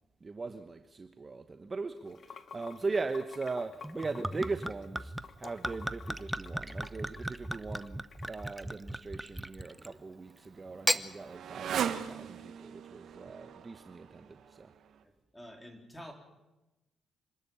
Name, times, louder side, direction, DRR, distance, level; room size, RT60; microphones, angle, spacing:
voice 1, 0.2-14.7, right 3 dB, 30° right, 1.1 m, -39 dB
Water / Sink (filling or washing), 2.0-8.4, left 6 dB, 45° left, 1.2 m, -50 dB
Gurgling / Chink clink / Liquid, 3.8-10.0 10.7-11.1, right 1 dB, 5° right, 0.8 m, -36 dB
Motorcycle, 9.6-15.0, right 8 dB, 65° right, 1.4 m, -40 dB
voice 2, 15.0-16.1, equal, 10° left, 4.0 m, -49 dB
26.0 x 12.5 x 8.8 m
cardioid pair, 90°, 0 cm